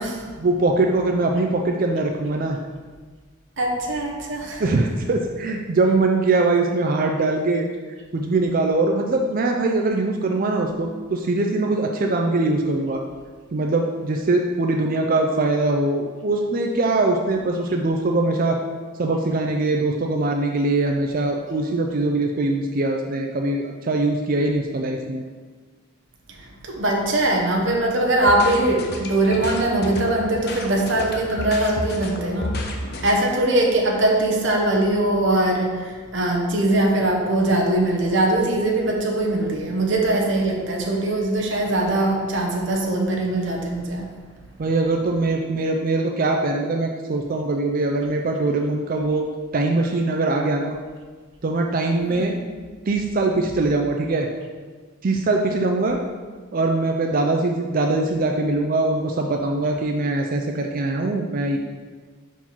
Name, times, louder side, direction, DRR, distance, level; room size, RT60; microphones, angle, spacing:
voice 1, 0.4-2.6 4.6-7.7 8.1-13.0 13.5-18.6 19.0-25.2 44.6-49.3 49.5-50.8 51.4-52.4 52.9-54.3 55.0-56.0 56.5-61.6, right 2 dB, 40° right, 2 dB, 0.4 m, -22 dB
voice 2, 3.6-4.6 26.6-32.6 33.0-44.0 52.2-52.3, right 1 dB, 60° right, 0 dB, 1.0 m, -21 dB
sound 1, 28.2-33.1, left 1 dB, 50° left, 0.7 m, -31 dB
5.5 x 4.5 x 4.5 m, 1.5 s
head